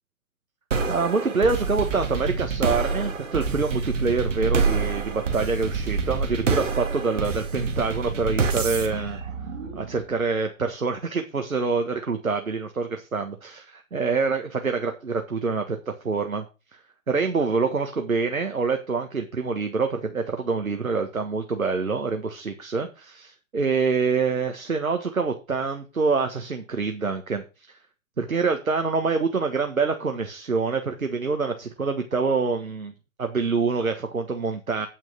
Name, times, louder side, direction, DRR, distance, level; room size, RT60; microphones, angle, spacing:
sound 1, 0.7-10.1, right 4 dB, 60° right, 2.2 m, -27 dB
voice 1, 0.9-9.2 9.7-16.4 17.1-27.4 28.2-32.9 33.2-34.9, right 4 dB, 80° right, 6 dB, 1.6 m, -26 dB
9.3 x 6.1 x 5.9 m, 0.31 s
figure-of-eight pair, 125°, 41 cm